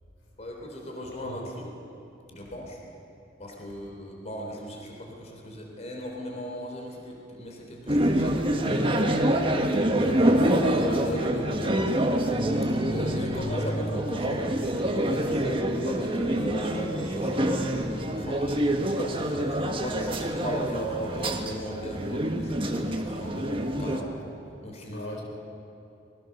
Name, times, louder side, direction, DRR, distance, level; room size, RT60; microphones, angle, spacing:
voice 1, 0.4-1.7 2.3-2.8 3.4-11.8 12.9-19.1 19.6-24.1 24.6-25.0, equal, 35° left, 0 dB, 3.5 m, -37 dB
sound 1, 7.9-24.0, right 1 dB, 30° right, 1.5 m, -26 dB
voice 2, 18.9-19.5 24.9-25.2, left 1 dB, 75° left, 1 dB, 3.8 m, -39 dB
25.5 x 21.0 x 6.6 m, 2.9 s
head